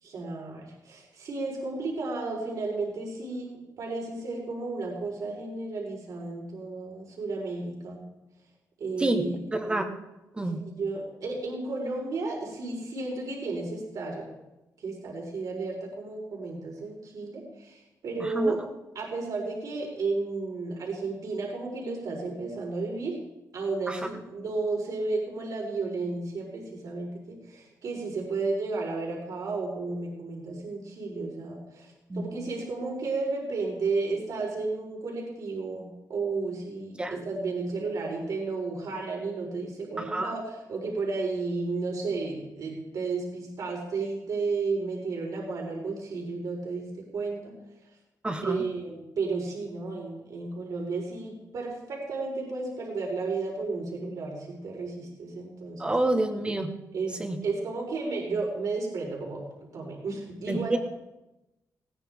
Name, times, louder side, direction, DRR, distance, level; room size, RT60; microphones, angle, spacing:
voice 1, 0.0-3.5 3.8-8.0 8.8-9.4 10.6-14.3 14.8-18.6 18.9-23.1 23.5-47.5 48.4-55.9 56.9-60.8, right 3 dB, 65° right, -1 dB, 4.5 m, -33 dB
voice 2, 9.5-9.9 10.4-10.6 18.2-18.6 23.9-24.0 32.1-32.3 37.0-37.2 40.0-40.4 48.2-48.6 55.8-56.7 57.2-57.4 60.5-60.8, right 2 dB, 15° right, 4 dB, 1.5 m, -28 dB
20.0 x 18.0 x 3.7 m, 0.97 s
wide cardioid pair, 155°, 6 cm